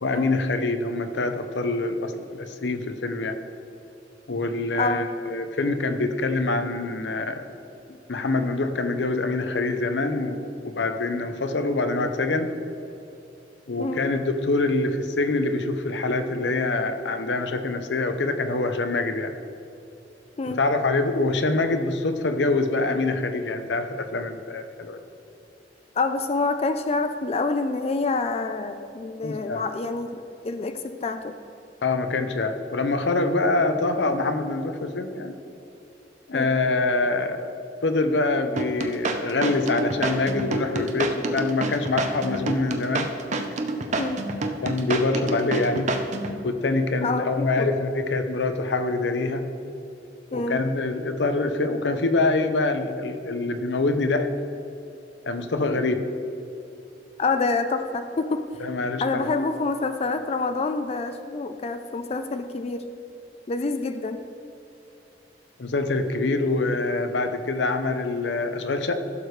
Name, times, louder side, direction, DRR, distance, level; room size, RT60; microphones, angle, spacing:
voice 1, 0.0-3.4 4.3-7.5 8.1-12.5 13.7-19.3 20.5-25.0 29.2-29.6 31.8-35.4 36.3-37.5 37.8-43.1 44.6-45.9 46.4-49.4 50.3-54.3 55.3-56.0 58.6-59.3 65.6-68.9, left 3 dB, 90° left, 8 dB, 0.7 m, -25 dB
voice 2, 4.7-5.1 13.8-14.0 20.4-20.6 26.0-31.4 36.3-36.6 44.0-44.3 47.0-47.7 50.3-50.6 55.7-55.8 57.2-58.5 59.0-62.9 63.5-64.2, left 3 dB, 35° left, 8 dB, 0.4 m, -27 dB
sound 1, 38.6-46.4, right 3 dB, 40° right, 0.7 m, -28 dB
15.5 x 6.6 x 3.2 m, 2.8 s
head